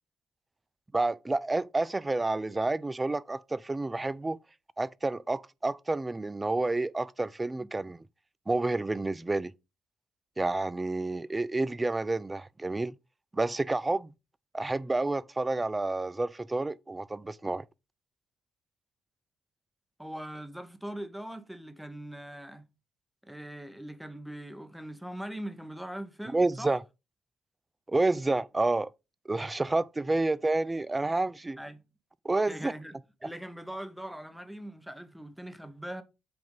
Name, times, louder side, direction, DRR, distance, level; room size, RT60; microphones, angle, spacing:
voice 1, 0.9-4.4 4.8-8.0 8.5-9.5 10.4-12.9 13.3-14.1 14.5-17.6 26.3-26.8 27.9-28.9 29.3-31.6 32.2-32.7, right 2 dB, 20° right, 0.4 m, -29 dB
voice 2, 20.0-22.7 23.2-26.8 31.6-31.8 32.5-32.9 33.2-36.0, right 1 dB, 5° right, 0.9 m, -41 dB
7.8 x 2.6 x 5.3 m
cardioid pair, 90°, 0 cm